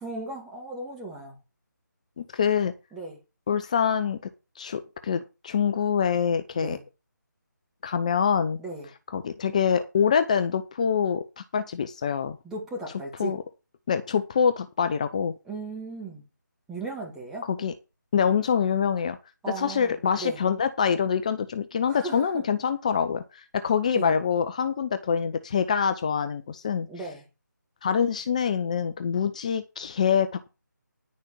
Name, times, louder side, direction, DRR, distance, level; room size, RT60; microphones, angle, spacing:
voice 1, 0.0-1.4 2.9-3.2 6.5-6.8 8.6-8.9 12.4-13.4 15.4-16.2 16.7-17.4 19.4-20.4 21.9-22.4 23.9-24.1 26.9-27.2, right 3 dB, 5° right, 1.8 m, -36 dB
voice 2, 2.2-2.7 3.5-4.2 4.6-6.8 7.8-8.6 9.1-12.4 13.2-13.4 13.9-15.3 17.5-17.7 18.1-19.2 19.6-23.2 23.6-26.9 27.8-30.3, left 7 dB, 20° left, 0.7 m, -25 dB
10.5 x 6.5 x 6.8 m
figure-of-eight pair, 155°, 10 cm